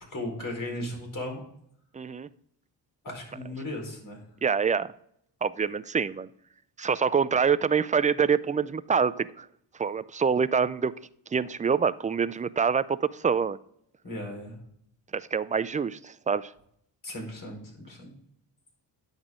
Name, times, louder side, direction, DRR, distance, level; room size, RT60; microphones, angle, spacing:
voice 1, 0.1-1.4 3.0-4.2 14.0-14.6 17.0-18.1, left 1 dB, 45° left, 1 dB, 4.6 m, -36 dB
voice 2, 1.9-2.3 4.4-4.9 5.4-6.3 6.8-9.5 9.8-10.9 11.3-13.6 15.1-16.5, right 6 dB, 20° right, 16 dB, 0.3 m, -26 dB
10.0 x 8.1 x 3.7 m, 0.70 s
cardioid pair, 70°, 45 cm